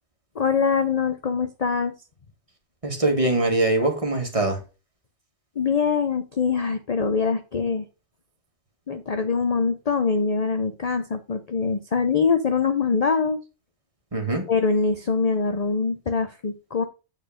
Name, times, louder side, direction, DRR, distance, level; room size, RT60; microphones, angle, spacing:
voice 1, 0.4-1.9 5.6-7.8 8.9-13.4 14.5-16.8, left 5 dB, 40° left, 8 dB, 0.6 m, -23 dB
voice 2, 2.8-4.6 14.1-14.5, right 2 dB, 25° right, 2 dB, 1.9 m, -22 dB
9.0 x 4.4 x 5.0 m, 0.31 s
omnidirectional pair, 1.4 m